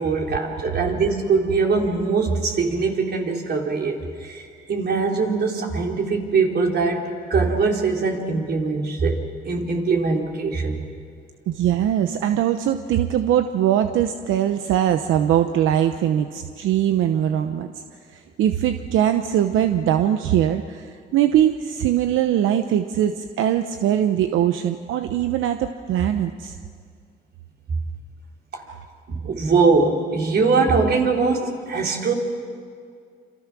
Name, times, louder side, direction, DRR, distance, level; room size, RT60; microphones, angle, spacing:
voice 1, 0.0-4.4 4.7-9.2 9.4-10.8 28.5-28.7 29.1-32.1, right 4 dB, 55° right, 0 dB, 4.1 m, -22 dB
voice 2, 11.5-17.7 18.1-26.6, right 10 dB, 85° right, 8 dB, 0.9 m, -21 dB
27.5 x 27.5 x 6.2 m, 2.2 s
cardioid pair, 90°, 20 cm